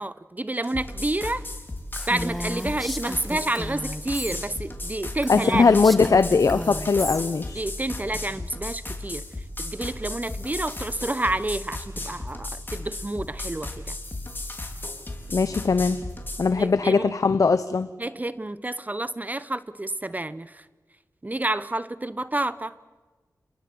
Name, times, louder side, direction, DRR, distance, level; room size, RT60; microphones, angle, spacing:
voice 1, 0.0-1.4 2.1-5.6 7.5-9.2 9.6-14.0 16.5-17.1 18.0-20.7 21.2-22.7, right 2 dB, 25° right, 15 dB, 0.8 m, -29 dB
sound 1, 0.6-16.5, left 2 dB, 35° left, 4.1 m, -35 dB
Female speech woman speaking, 1.9-4.4 4.8-4.9 5.2-7.2, equal, ahead, 1.5 m, -34 dB
voice 2, 5.3-7.6 15.3-16.0 16.4-17.9, left 4 dB, 65° left, 11 dB, 0.9 m, -20 dB
28.0 x 21.5 x 7.9 m, 1.3 s
wide cardioid pair, 60°, 6 cm